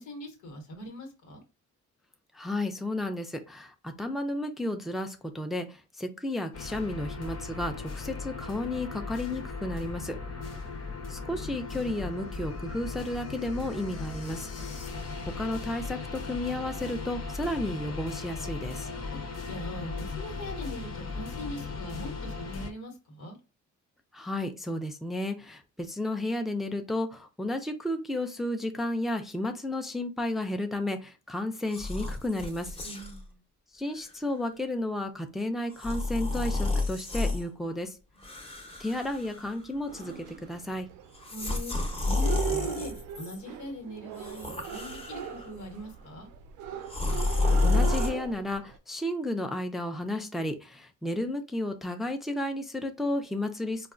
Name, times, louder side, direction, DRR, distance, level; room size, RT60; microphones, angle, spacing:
voice 1, 0.0-1.4 19.5-23.4 32.8-33.4 41.3-46.3, left 1 dB, 90° left, 1.2 m, -41 dB
voice 2, 2.3-10.2 11.1-14.5 15.4-18.9 24.1-32.8 33.7-38.0 38.8-40.9 47.6-53.9, left 1 dB, ahead, 0.4 m, -32 dB
sound 1, 6.5-22.7, left 4 dB, 60° left, 0.9 m, -37 dB
sound 2, 31.7-33.2 33.9-34.1 35.7-37.4 38.2-39.7 39.9-40.4 41.1-43.4 44.1-45.5 46.9-48.1, left 3 dB, 20° left, 0.8 m, -30 dB
sound 3, 39.9-48.8, right 10 dB, 85° right, 0.5 m, -38 dB
4.0 x 2.3 x 2.5 m
cardioid pair, 90°, 30 cm